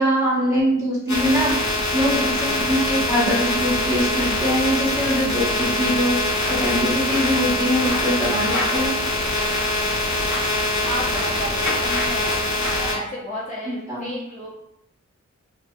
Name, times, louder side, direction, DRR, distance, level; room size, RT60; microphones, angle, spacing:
voice 1, 0.0-1.5 1.9-9.0 13.9-14.1, equal, 10° right, -8 dB, 1.3 m, -22 dB
sound 1, 1.1-12.9, left 1 dB, 75° left, 0.7 m, -23 dB
sound 2, 5.7-12.7, left 1 dB, 80° right, 1.3 m, -33 dB
voice 2, 10.8-14.6, equal, 25° left, -8 dB, 0.6 m, -32 dB
2.6 x 2.5 x 2.2 m, 0.83 s
wide cardioid pair, 60°, 29 cm